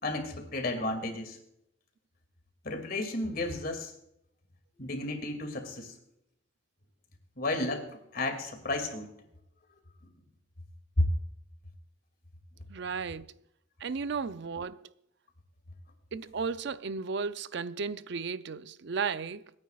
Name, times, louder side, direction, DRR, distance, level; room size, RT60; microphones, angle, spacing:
voice 1, 0.0-1.4 2.6-3.9 4.8-6.0 7.4-9.1 11.0-11.1, left 2 dB, 50° left, 2.4 m, -32 dB
voice 2, 12.7-13.4 13.8-14.9 16.1-19.5, right 5 dB, 65° right, 0.5 m, -34 dB
25.5 x 9.7 x 2.4 m
head